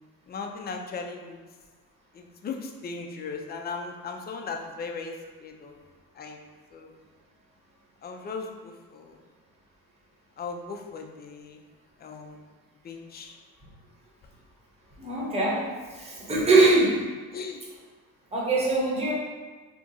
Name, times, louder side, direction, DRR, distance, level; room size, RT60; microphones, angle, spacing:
voice 1, 0.3-1.4 2.1-5.1 5.4-5.7 6.2-6.4 6.7-6.9 8.0-9.2 10.4-11.6 12.0-12.4 12.8-13.3 17.3-17.6, left 4 dB, 25° left, 3 dB, 0.4 m, -37 dB
voice 2, 15.0-15.6 15.9-16.9 18.3-19.1, right 2 dB, 15° right, -5 dB, 1.0 m, -22 dB
2.9 x 2.4 x 3.8 m, 1.4 s
supercardioid pair, 90°, 39 cm